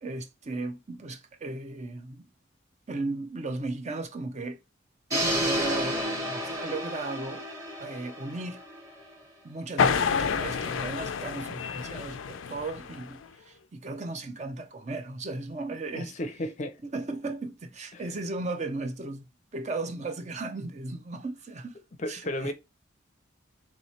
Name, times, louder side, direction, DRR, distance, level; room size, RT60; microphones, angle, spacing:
voice 1, 0.0-2.3 2.9-4.6 5.1-7.4 7.8-8.6 9.4-16.2 16.8-21.8 22.1-22.5, right 2 dB, 35° right, 0.5 m, -36 dB
sound 1, 5.1-9.1, equal, 15° right, 1.0 m, -31 dB
sound 2, 9.8-13.3, left 6 dB, 90° left, 0.4 m, -29 dB
voice 2, 15.9-16.8 17.9-18.0 22.0-22.5, left 1 dB, 40° left, 0.5 m, -33 dB
3.2 x 3.1 x 4.2 m
head